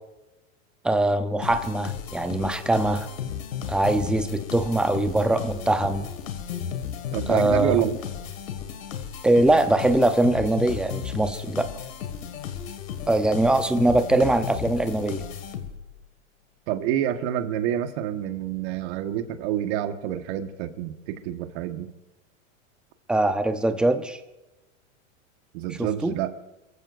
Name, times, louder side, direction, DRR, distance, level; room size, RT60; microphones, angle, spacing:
voice 1, 0.8-3.1 3.7-6.1 7.3-7.9 9.2-11.7 13.1-15.2 23.1-24.2 25.8-26.1, right 2 dB, ahead, 9 dB, 0.7 m, -22 dB
sound 1, 1.4-16.0, left 8 dB, 85° left, 2.1 m, -34 dB
voice 2, 7.1-8.0 16.7-21.9 25.5-26.3, right 11 dB, 55° right, 7 dB, 1.6 m, -27 dB
29.0 x 15.0 x 2.6 m, 1.0 s
hypercardioid pair, 125°, 39 cm